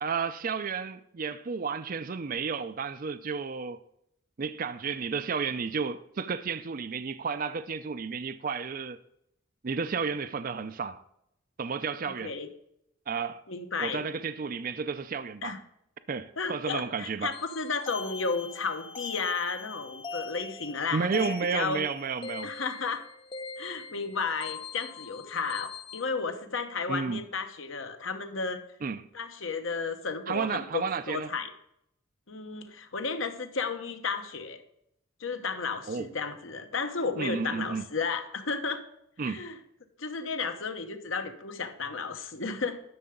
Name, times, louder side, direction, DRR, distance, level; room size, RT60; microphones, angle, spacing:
voice 1, 0.0-3.8 4.4-9.0 9.6-11.0 11.6-12.3 13.1-13.4 13.8-15.6 16.1-17.3 20.9-22.5 26.9-27.2 28.8-29.1 30.3-31.3 35.9-36.1 37.2-37.8 39.2-39.4, right 5 dB, 45° right, 0.4 m, -32 dB
voice 2, 12.0-12.5 13.5-14.0 15.4-15.6 16.4-21.2 21.5-21.8 22.4-23.0 23.6-28.6 29.1-31.5 32.3-34.6 35.2-38.8 39.2-39.6 40.0-42.8, left 4 dB, 70° left, 1.1 m, -33 dB
sound 1, 17.3-26.0, left 4 dB, 25° left, 0.4 m, -42 dB
11.0 x 6.7 x 3.7 m
head